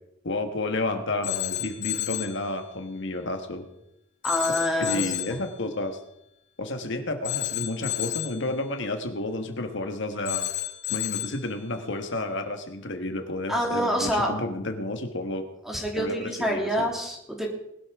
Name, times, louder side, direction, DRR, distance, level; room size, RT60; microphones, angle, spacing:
voice 1, 0.2-3.6 4.8-6.0 6.6-10.5 10.9-15.4 16.0-16.8, left 2 dB, 60° left, 6 dB, 1.4 m, -31 dB
Telephone, 1.2-2.4 4.2-5.4 7.2-8.4 10.3-11.4, left 14 dB, 45° left, 5.0 m, -31 dB
voice 2, 4.2-5.4 13.5-14.3 15.6-17.5, equal, ahead, -1 dB, 2.7 m, -27 dB
20.5 x 12.5 x 3.6 m, 0.81 s
head